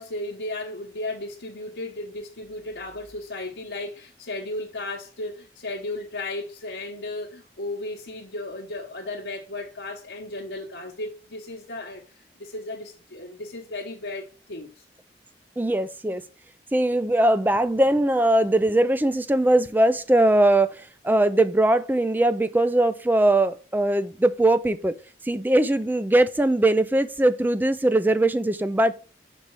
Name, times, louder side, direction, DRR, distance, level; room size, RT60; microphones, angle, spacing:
voice 1, 0.0-14.8, left 2 dB, 80° left, 1.1 m, -35 dB
voice 2, 15.6-16.2 16.7-25.0 25.2-28.9, right 1 dB, 10° right, 0.3 m, -21 dB
5.3 x 4.2 x 4.7 m
head